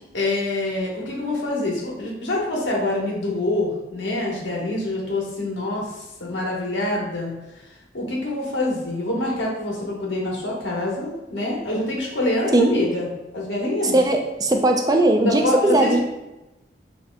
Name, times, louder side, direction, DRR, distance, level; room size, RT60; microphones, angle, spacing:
voice 1, 0.1-7.6 7.9-13.1 13.3-14.0 15.2-16.0, left 2 dB, 80° left, -3 dB, 1.2 m, -25 dB
voice 2, 13.9-16.0, right 1 dB, 20° right, 4 dB, 0.4 m, -18 dB
6.2 x 2.9 x 2.2 m, 0.98 s
head